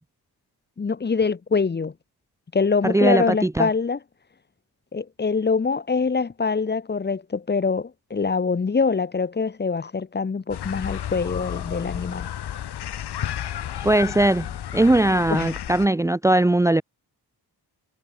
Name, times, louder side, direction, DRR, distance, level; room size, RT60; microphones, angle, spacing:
voice 1, 0.8-1.9 2.5-4.0 4.9-12.3 15.3-15.6, left 4 dB, 25° left, 1.4 m, -24 dB
voice 2, 2.8-3.7 13.8-14.5 14.7-16.8, right 1 dB, 5° right, 0.8 m, -19 dB
sound 1, 10.5-15.9, left 10 dB, 75° left, 2.0 m, -32 dB
wide cardioid pair, 170°, 40 cm